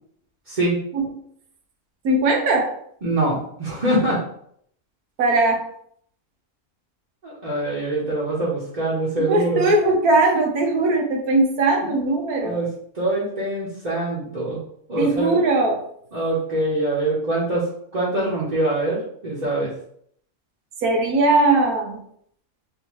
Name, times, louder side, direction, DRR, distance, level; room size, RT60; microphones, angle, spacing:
voice 1, 0.5-0.8 3.0-4.2 7.2-9.7 11.8-12.0 12.4-12.7 12.9-14.6 14.9-15.4 16.1-17.6 17.9-19.7, right 1 dB, 35° right, -7 dB, 0.9 m, -24 dB
voice 2, 2.0-2.7 5.2-5.6 9.3-12.6 15.0-15.8 20.8-22.0, right 2 dB, 85° right, 2 dB, 1.2 m, -19 dB
3.7 x 2.7 x 3.0 m, 0.66 s
omnidirectional pair, 1.5 m